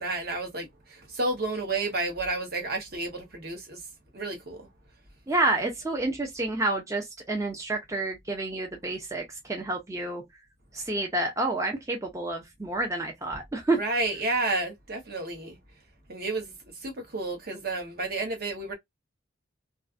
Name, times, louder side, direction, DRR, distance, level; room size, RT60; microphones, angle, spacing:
voice 1, 0.0-3.8 4.1-4.6 13.7-15.6 16.1-16.5 16.8-18.7, right 2 dB, 55° right, 0.9 m, -31 dB
voice 2, 5.3-10.2 10.7-13.8, right 2 dB, 15° right, 0.5 m, -29 dB
2.4 x 2.4 x 2.3 m
head